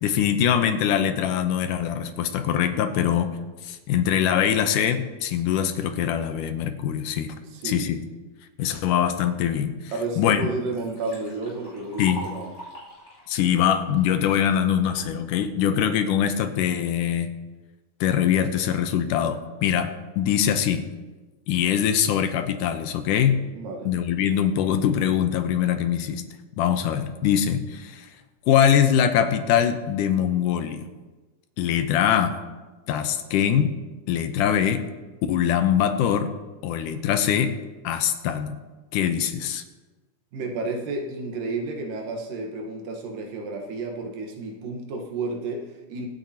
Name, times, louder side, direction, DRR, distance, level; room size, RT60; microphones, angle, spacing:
voice 1, 0.0-3.3 3.6-7.3 7.6-8.0 8.6-9.7 10.2-10.5 12.0-12.2 13.3-17.4 18.0-20.9 21.5-23.4 23.9-26.2 26.6-28.1 28.5-30.8 31.6-32.4 32.9-33.7 34.1-34.8 35.3-36.3 36.6-37.5 37.8-38.6 38.9-39.6, left 9 dB, 80° left, 8 dB, 2.3 m, -23 dB
voice 2, 7.5-7.9 9.9-12.5 23.5-23.9 40.3-46.1, right 3 dB, 85° right, 2 dB, 3.0 m, -31 dB
Liquid, 9.9-10.0 10.4-14.4 15.0-15.4, equal, 15° left, 2.8 m, -42 dB
24.0 x 9.0 x 2.9 m, 1.2 s
omnidirectional pair, 3.7 m